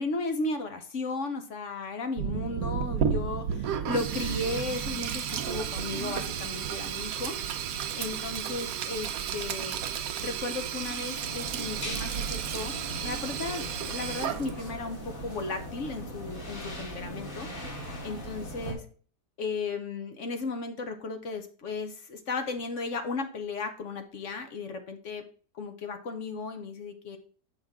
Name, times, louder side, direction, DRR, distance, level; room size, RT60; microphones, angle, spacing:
voice 1, 0.0-7.3 7.9-9.8 10.2-12.7 13.0-17.5 18.0-18.9 19.4-25.2 25.5-27.2, left 3 dB, 55° left, 7 dB, 1.0 m, -35 dB
sound 1, 2.2-14.4, right 8 dB, 85° right, 1.2 m, -38 dB
Sink (filling or washing), 2.8-14.8, right 8 dB, 65° right, 1.0 m, -34 dB
sound 2, 11.1-18.7, equal, 35° left, 1.6 m, -39 dB
7.6 x 5.6 x 3.6 m, 0.42 s
omnidirectional pair, 1.8 m